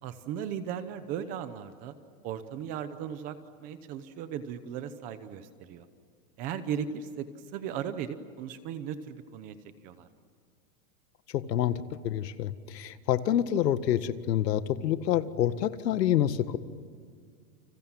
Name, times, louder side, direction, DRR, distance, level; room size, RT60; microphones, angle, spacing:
voice 1, 0.0-1.9 2.2-5.8 6.4-7.3 7.5-9.5 9.8-10.1, right 8 dB, 15° right, 11 dB, 0.8 m, -37 dB
voice 2, 11.3-11.8 12.0-16.6, left 11 dB, 85° left, 11 dB, 1.9 m, -27 dB
30.0 x 26.5 x 7.3 m, 2.1 s
supercardioid pair, 180°, 48 cm